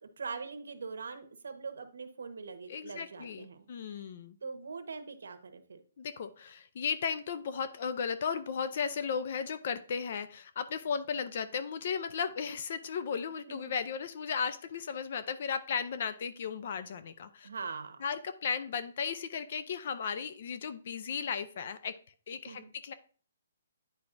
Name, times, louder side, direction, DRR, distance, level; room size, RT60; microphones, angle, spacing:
voice 1, 0.0-3.6 3.9-4.1 4.4-5.8 13.5-13.8 17.4-18.0 22.4-22.7, right 4 dB, 80° right, 9 dB, 1.0 m, -42 dB
voice 2, 2.7-4.4 6.0-17.5 18.0-21.9 22.3-22.9, left 6 dB, 40° left, 12 dB, 0.4 m, -35 dB
9.5 x 4.6 x 2.6 m, 0.41 s
hypercardioid pair, 175°, 0 cm